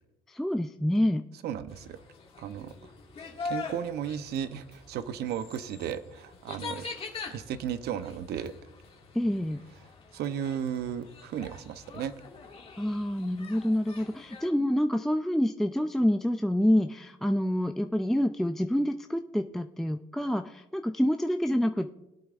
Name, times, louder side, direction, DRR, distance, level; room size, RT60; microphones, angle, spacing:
voice 1, 0.3-1.3 9.1-9.6 12.8-21.9, equal, ahead, 7 dB, 0.4 m, -27 dB
voice 2, 1.4-2.0 2.4-2.9 3.4-6.8 7.3-8.5 10.1-12.1, right 9 dB, 70° right, 12 dB, 0.7 m, -34 dB
sound 1, 1.7-14.5, left 4 dB, 35° left, 1.9 m, -44 dB
20.0 x 8.4 x 2.5 m, 1.0 s
cardioid pair, 110°, 17 cm